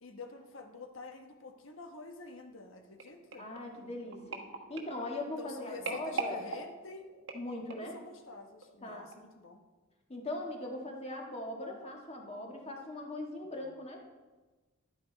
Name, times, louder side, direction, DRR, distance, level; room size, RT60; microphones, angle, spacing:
voice 1, 0.0-3.5 5.4-7.1 7.9-9.6, left 3 dB, 70° left, 5 dB, 1.2 m, -48 dB
sound 1, 3.0-8.0 8.6-8.8 9.1-9.2, right 4 dB, 65° right, 1.3 m, -42 dB
voice 2, 3.4-4.4 4.7-6.4 7.3-7.9 8.8-9.1 10.1-14.0, left 1 dB, 30° left, 1 dB, 1.7 m, -40 dB
11.5 x 9.1 x 4.0 m, 1.2 s
head